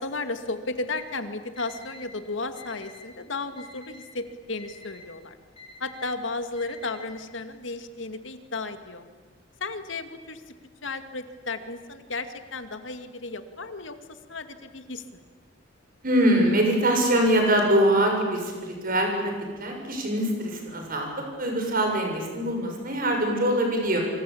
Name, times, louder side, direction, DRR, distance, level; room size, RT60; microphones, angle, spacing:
voice 1, 0.0-5.4 5.8-9.1 9.6-10.4 10.8-15.2, left 3 dB, 75° left, 8 dB, 2.3 m, -34 dB
Alarm, 0.9-1.0 1.6-2.0 2.6-3.0 3.6-4.0 4.6-5.0 5.6-6.0 6.6-7.0, left 3 dB, 30° left, 6.5 m, -47 dB
voice 2, 16.0-19.3 19.6-21.1 21.4-24.0, right 1 dB, 50° right, 2 dB, 7.1 m, -23 dB
27.0 x 25.5 x 8.7 m, 1.4 s
head